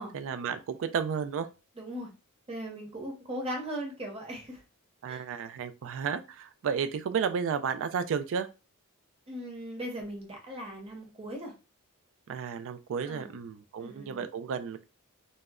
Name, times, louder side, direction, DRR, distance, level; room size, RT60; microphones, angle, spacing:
voice 1, 0.0-1.5 5.0-8.5 12.3-14.8, right 6 dB, 60° right, 11 dB, 0.3 m, -32 dB
voice 2, 1.8-2.1 2.5-4.6 5.1-5.2 9.3-11.5 13.0-13.4 13.8-14.3, equal, 25° right, 1 dB, 0.7 m, -38 dB
2.1 x 2.0 x 3.5 m, 0.29 s
head